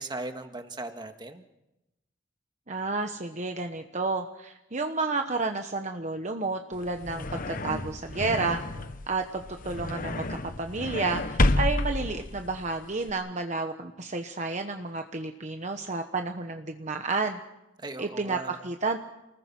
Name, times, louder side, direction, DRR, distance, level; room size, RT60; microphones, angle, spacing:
voice 1, 0.0-1.4 11.9-12.3 17.8-18.6, right 2 dB, 25° right, 6 dB, 1.7 m, -39 dB
voice 2, 2.7-8.6 9.1-10.2 10.6-17.4 18.0-19.0, right 3 dB, 40° right, 5 dB, 1.1 m, -31 dB
sound 1, 6.7-13.1, left 2 dB, 45° left, 1.1 m, -30 dB
29.0 x 20.0 x 6.1 m, 0.94 s
head